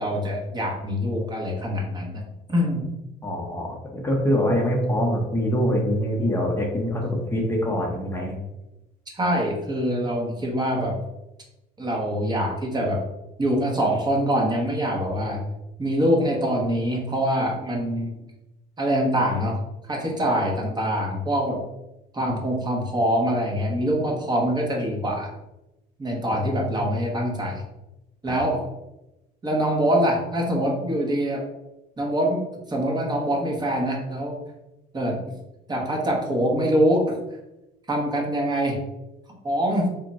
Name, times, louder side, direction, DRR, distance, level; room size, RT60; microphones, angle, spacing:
voice 1, 0.0-2.2 2.5-2.8 9.1-10.9 11.8-13.0 13.4-15.4 15.8-18.2 18.8-19.6 19.9-21.6 22.1-25.3 26.0-27.6 28.2-28.6 29.4-31.4 32.0-32.4 32.7-34.4 34.9-35.2 35.7-37.2 37.9-38.8 39.4-39.9, equal, 25° right, -1 dB, 0.9 m, -24 dB
voice 2, 3.2-8.3 26.3-26.4 28.3-28.4, equal, 15° left, -2 dB, 0.7 m, -24 dB
3.5 x 2.1 x 4.0 m, 0.95 s
cardioid pair, 110°, 17 cm